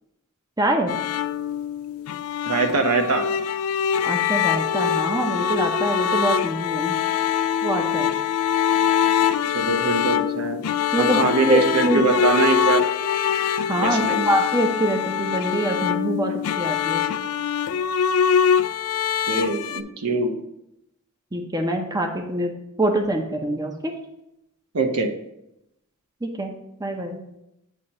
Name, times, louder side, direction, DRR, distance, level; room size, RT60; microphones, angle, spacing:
voice 1, 0.6-0.9 4.0-7.0 7.6-8.1 10.9-12.1 13.7-17.0 21.3-22.5 22.8-23.9 26.2-26.5 26.8-27.2, right 1 dB, 15° right, 3 dB, 0.6 m, -24 dB
sound 1, 0.9-19.8, left 8 dB, 75° left, 0.3 m, -23 dB
voice 2, 2.5-3.3 9.5-10.6 11.0-12.8 13.8-14.3 19.3-20.3 24.7-25.1, right 4 dB, 80° right, 4 dB, 0.8 m, -22 dB
8.0 x 2.9 x 5.4 m, 0.85 s
head